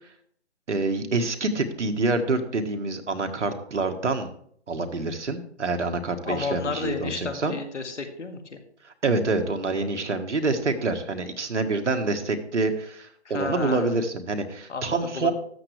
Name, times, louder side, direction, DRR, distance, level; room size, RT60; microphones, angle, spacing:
voice 1, 0.7-4.3 4.7-7.5 8.8-15.3, right 3 dB, 85° right, 6 dB, 1.6 m, -26 dB
voice 2, 6.3-8.6 13.3-13.9 14.7-15.3, left 4 dB, 80° left, 6 dB, 2.0 m, -32 dB
13.0 x 8.1 x 3.3 m, 0.63 s
hypercardioid pair, 165°, 35 cm